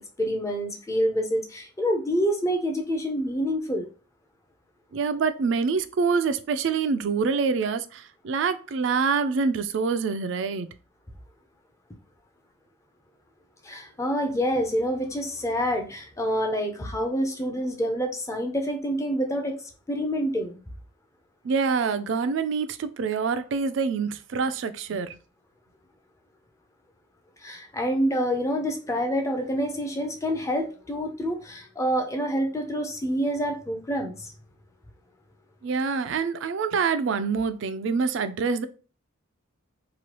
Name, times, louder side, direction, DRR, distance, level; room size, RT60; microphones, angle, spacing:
voice 1, 0.0-3.9 13.6-19.6 19.9-20.6 27.4-34.3, equal, 15° left, 0.4 m, -27 dB
voice 2, 4.9-10.7 21.4-25.2 35.6-38.7, right 5 dB, 65° right, 0.3 m, -26 dB
3.0 x 2.3 x 2.9 m
head